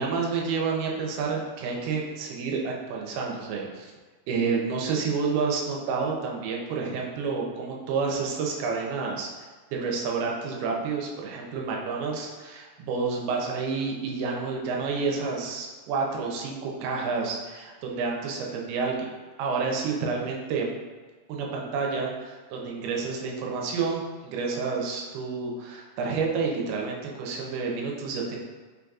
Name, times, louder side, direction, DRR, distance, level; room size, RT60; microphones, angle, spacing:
voice 1, 0.0-3.9 4.3-20.7 21.3-28.4, right 4 dB, 80° right, -1 dB, 2.5 m, -29 dB
5.7 x 3.9 x 2.3 m, 1.4 s
omnidirectional pair, 4.7 m